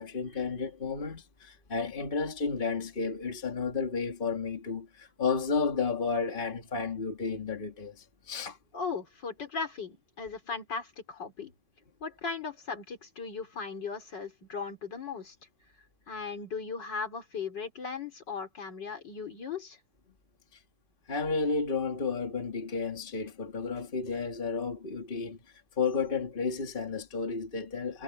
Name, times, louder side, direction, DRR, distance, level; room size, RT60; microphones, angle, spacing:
voice 1, 0.0-8.6 21.1-25.4 25.8-28.0, left 4 dB, 30° left, 2.3 m, -32 dB
voice 2, 8.7-11.5 12.0-15.4 16.1-19.8, left 5 dB, 65° left, 4.1 m, -37 dB
omnidirectional pair, 2.0 m